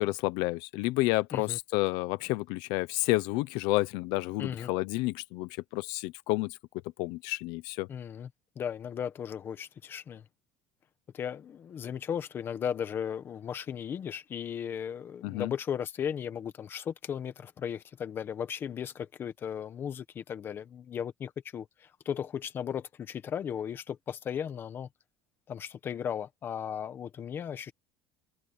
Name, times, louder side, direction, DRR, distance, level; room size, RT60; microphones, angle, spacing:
voice 1, 0.0-6.6 7.0-7.9 15.2-15.5, left 20 dB, 70° left, 0.9 m, -30 dB
voice 2, 4.4-4.7 7.9-8.3 8.6-10.2 11.1-21.7 22.0-24.9 25.5-27.7, left 8 dB, 30° left, 1.4 m, -36 dB
cardioid pair, 165°, 8 cm